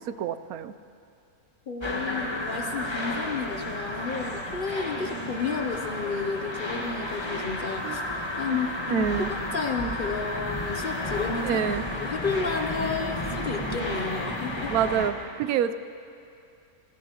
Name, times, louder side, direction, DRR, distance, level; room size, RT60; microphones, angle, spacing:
voice 1, 0.1-0.7 7.8-8.0 8.9-9.3 11.4-11.8 14.7-15.7, right 9 dB, 85° right, 13 dB, 1.1 m, -27 dB
voice 2, 1.7-8.0 8.4-11.6 12.0-14.7, left 5 dB, 45° left, 5 dB, 0.7 m, -32 dB
sound 1, 1.8-15.1, left 1 dB, 20° left, 1.2 m, -32 dB
28.0 x 15.5 x 3.0 m, 2.6 s
omnidirectional pair, 1.5 m